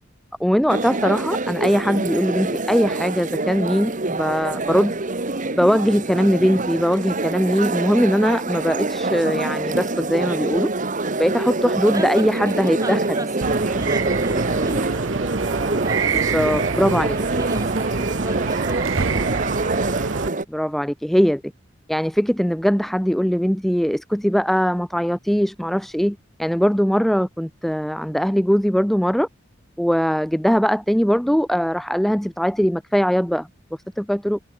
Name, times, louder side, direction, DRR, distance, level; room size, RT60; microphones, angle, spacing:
voice 1, 0.4-4.9 5.5-10.7 11.2-13.0 16.3-17.1 20.5-21.4 21.9-29.3 29.8-33.5 34.0-34.4, equal, ahead, 0.5 m, -20 dB
sound 1, 0.7-20.4, right 2 dB, 40° right, 1.9 m, -25 dB
voice 2, 11.8-19.3, right 1 dB, 20° right, 2.7 m, -36 dB
sound 2, 13.4-20.3, right 5 dB, 85° right, 1.0 m, -26 dB
head